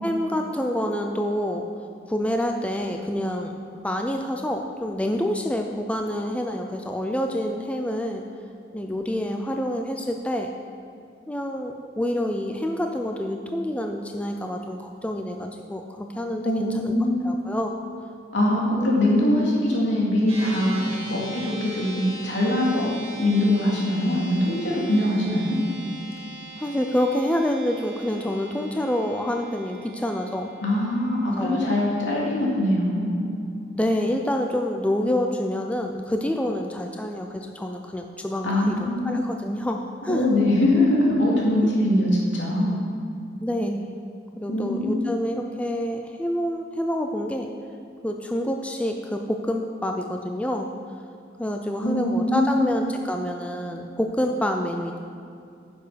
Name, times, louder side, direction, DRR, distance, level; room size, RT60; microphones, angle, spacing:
voice 1, 0.0-1.6 2.1-8.2 8.7-10.5 11.3-17.0 17.2-17.8 18.7-19.1 25.2-25.4 26.6-30.5 31.4-31.7 33.7-40.3 41.6-41.7 43.4-43.9 44.4-47.5 48.0-50.7 51.4-55.0, left 1 dB, 5° left, 3 dB, 0.4 m, -27 dB
voice 2, 16.4-17.3 18.3-22.9 23.2-25.6 30.6-33.1 38.4-39.2 40.1-42.8 44.5-45.0 51.8-52.7, left 1 dB, 80° left, -4 dB, 2.6 m, -22 dB
sound 1, 20.3-33.8, right 2 dB, 35° right, 2.7 m, -41 dB
10.0 x 7.0 x 5.1 m, 2.4 s
head